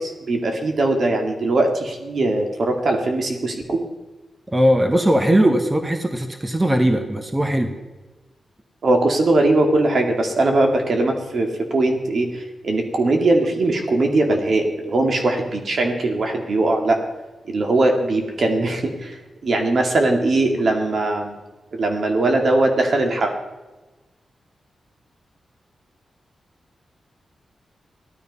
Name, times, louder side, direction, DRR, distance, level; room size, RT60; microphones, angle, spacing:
voice 1, 0.0-3.8 8.8-17.0 17.5-19.2 19.4-21.4 21.7-23.3, right 2 dB, 65° right, 3 dB, 2.4 m, -20 dB
voice 2, 4.5-7.7, right 1 dB, 20° right, 6 dB, 1.6 m, -19 dB
15.5 x 12.0 x 5.5 m, 1.1 s
cardioid pair, 75°, 0 cm